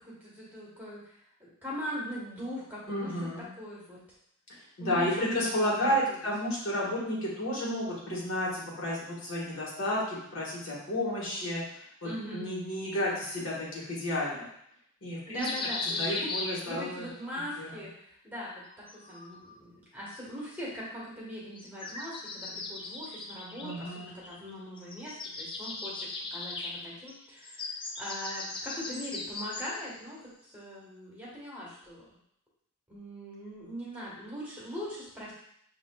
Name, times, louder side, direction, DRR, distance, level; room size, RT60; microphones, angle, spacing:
voice 1, 0.0-3.1 3.6-4.0 4.8-6.2 12.0-12.5 15.3-32.0 32.9-35.3, equal, 10° right, -7 dB, 1.2 m, -41 dB
voice 2, 2.9-3.5 4.8-14.5 15.0-15.5 16.0-17.1 17.6-17.8 23.6-24.1, left 1 dB, 65° left, -5 dB, 1.4 m, -32 dB
sound 1, 15.4-17.1 18.5-19.6 21.5-24.5 24.8-29.9, left 3 dB, 25° left, 0.4 m, -38 dB
6.8 x 2.6 x 2.3 m, 0.71 s
head